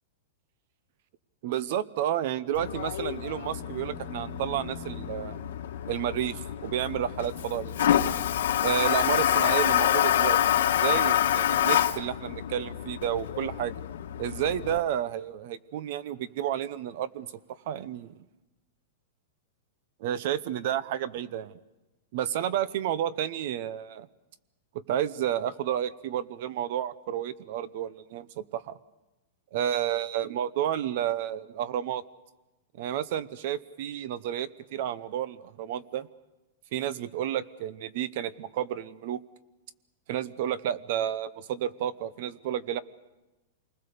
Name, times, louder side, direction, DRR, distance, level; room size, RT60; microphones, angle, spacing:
voice 1, 1.4-5.4 5.9-8.0 8.6-13.7 14.2-17.3 17.7-18.2 20.0-21.5 22.1-24.1 24.7-28.8 29.5-32.0 32.8-36.1 36.7-39.2 40.1-42.8, right 10 dB, 40° right, 17 dB, 0.8 m, -31 dB
Toilet flush, 2.5-14.8, left 11 dB, 70° left, 1.4 m, -27 dB
Bowed string instrument, 3.4-9.2, equal, 5° right, 2.7 m, -49 dB
28.5 x 20.0 x 6.8 m, 1.0 s
supercardioid pair, 175°, 0 cm